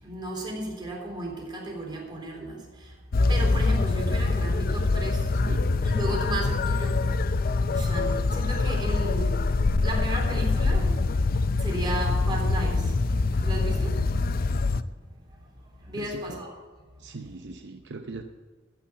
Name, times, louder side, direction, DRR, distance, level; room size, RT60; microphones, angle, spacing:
voice 1, 0.0-2.9 3.3-5.3 5.8-7.0 7.7-9.4 9.8-11.0 11.6-12.9 13.4-14.0 15.9-16.5, right 1 dB, 25° right, -1 dB, 3.6 m, -34 dB
sound 1, 3.1-14.8, left 3 dB, 50° left, 0.5 m, -24 dB
voice 2, 5.4-5.8 8.2-8.4 16.0-16.4 17.0-18.2, right 3 dB, 65° right, 6 dB, 0.7 m, -40 dB
15.0 x 5.9 x 8.6 m, 1.4 s
head